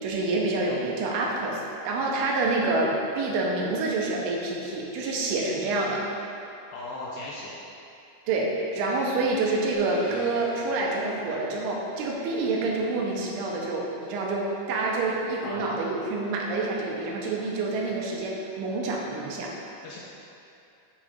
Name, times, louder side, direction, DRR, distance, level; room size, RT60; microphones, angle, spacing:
voice 1, 0.0-6.0 8.3-19.5, right 2 dB, 85° right, -2 dB, 3.1 m, -27 dB
voice 2, 6.7-7.6 15.4-15.6 19.8-20.0, left 2 dB, 85° left, -5 dB, 2.5 m, -37 dB
sound 1, 9.7-11.9, equal, 60° right, 2.0 m, -47 dB
14.0 x 4.9 x 2.5 m, 2.7 s
omnidirectional pair, 5.5 m